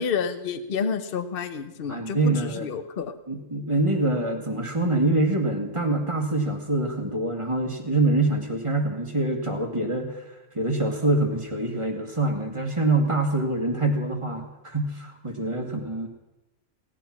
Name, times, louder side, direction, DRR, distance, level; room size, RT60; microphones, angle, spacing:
voice 1, 0.0-3.1, left 6 dB, 50° left, 10 dB, 1.0 m, -29 dB
voice 2, 1.9-2.7 3.3-10.2 10.6-16.1, right 2 dB, 25° right, 4 dB, 1.7 m, -25 dB
16.5 x 10.5 x 5.9 m, 0.98 s
omnidirectional pair, 1.4 m